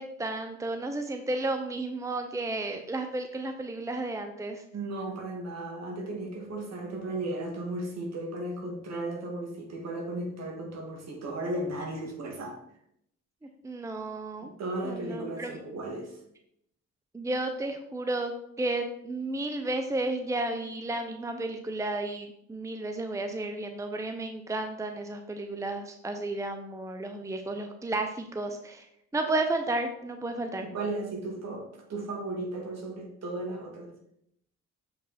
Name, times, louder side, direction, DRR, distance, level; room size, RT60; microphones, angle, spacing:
voice 1, 0.0-4.6 13.6-14.5 14.8-15.6 17.1-28.9 29.1-30.7, right 2 dB, 10° right, 6 dB, 0.7 m, -32 dB
voice 2, 4.7-12.6 14.4-16.2 30.6-33.9, right 2 dB, 60° right, 1 dB, 2.1 m, -35 dB
7.2 x 5.2 x 4.2 m, 0.73 s
cardioid pair, 90°, 30 cm